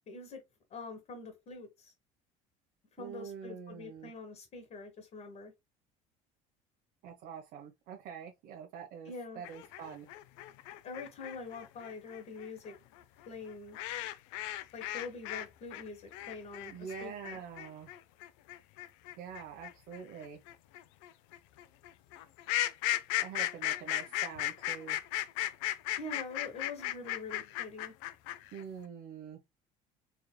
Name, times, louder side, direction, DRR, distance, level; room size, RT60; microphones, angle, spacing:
voice 1, 0.1-0.4 0.7-1.9 3.0-5.5 9.0-9.4 10.8-12.7 13.3-13.8 14.7-17.4 26.0-27.9, left 4 dB, 50° left, 1.4 m, -45 dB
voice 2, 3.0-4.1 7.0-10.1 16.7-17.9 19.2-20.4 23.2-25.0 28.5-29.4, right 7 dB, 70° right, 1.0 m, -45 dB
sound 1, 9.4-15.5 15.7-28.6, left 14 dB, 85° left, 0.5 m, -36 dB
4.7 x 3.2 x 2.2 m
supercardioid pair, 100°, 16 cm